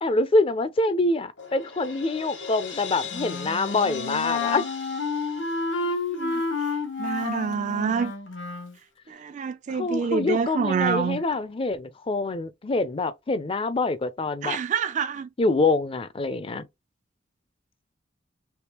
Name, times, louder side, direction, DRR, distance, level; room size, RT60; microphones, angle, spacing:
voice 1, 0.0-4.6 9.7-14.6 15.4-16.7, left 2 dB, 30° left, 0.5 m, -25 dB
Crash cymbal, 1.4-6.3, left 6 dB, 70° left, 1.4 m, -39 dB
Wind instrument woodwind instrument, 3.1-8.7, left 3 dB, 85° left, 1.1 m, -30 dB
voice 2, 5.8-6.7 7.0-8.1 9.1-11.2 14.4-15.3, right 6 dB, 40° right, 0.3 m, -27 dB
3.5 x 3.1 x 2.9 m
head